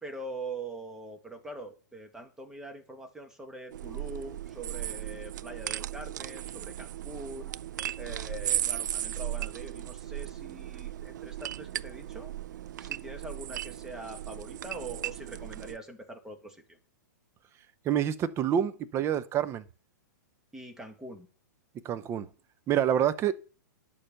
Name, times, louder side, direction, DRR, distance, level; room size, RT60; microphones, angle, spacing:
voice 1, 0.0-7.5 8.0-12.3 12.8-16.8 20.5-21.3, right 2 dB, 5° right, 1.8 m, -43 dB
sound 1, 3.7-15.8, right 12 dB, 70° right, 0.4 m, -36 dB
voice 2, 17.8-19.6 21.8-22.3 22.7-23.3, right 9 dB, 25° right, 0.7 m, -27 dB
10.0 x 6.8 x 6.5 m
hypercardioid pair, 130°, 10 cm